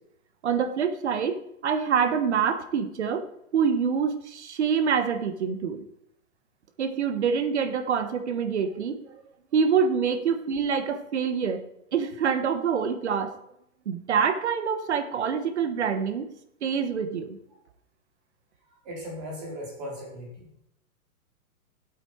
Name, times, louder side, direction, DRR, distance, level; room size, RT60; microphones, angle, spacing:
voice 1, 0.4-3.3 3.5-5.8 6.8-9.2 9.5-11.6 11.9-13.4 13.8-16.3 16.6-17.4, right 6 dB, 50° right, 10 dB, 1.3 m, -26 dB
voice 2, 18.6-20.5, equal, 30° right, -2 dB, 4.3 m, -38 dB
13.0 x 8.6 x 4.7 m, 0.77 s
hypercardioid pair, 175°, 44 cm